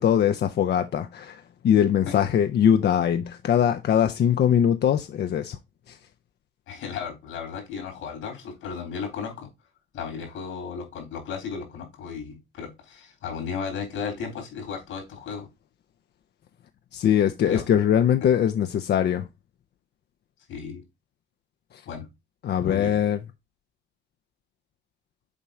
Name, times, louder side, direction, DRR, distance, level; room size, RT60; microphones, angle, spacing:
voice 1, 0.0-5.6 5.9-6.0 16.9-19.3 21.7-21.8 22.4-23.2, left 9 dB, 60° left, 0.6 m, -22 dB
voice 2, 6.7-9.5 9.9-15.5 17.4-17.6 20.5-20.8 21.9-22.1 22.6-22.9, left 6 dB, 90° left, 3.8 m, -34 dB
7.3 x 4.5 x 3.7 m
cardioid pair, 90°, 20 cm